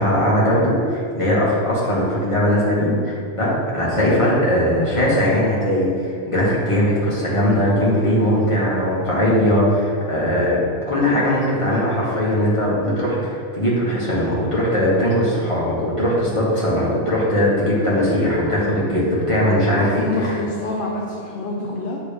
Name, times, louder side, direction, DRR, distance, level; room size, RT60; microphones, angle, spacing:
voice 1, 0.0-10.6 10.8-20.4, equal, 25° left, -6 dB, 1.6 m, -19 dB
voice 2, 19.7-22.0, left 2 dB, 55° left, -2 dB, 0.8 m, -26 dB
6.7 x 3.4 x 5.1 m, 2.3 s
omnidirectional pair, 1.2 m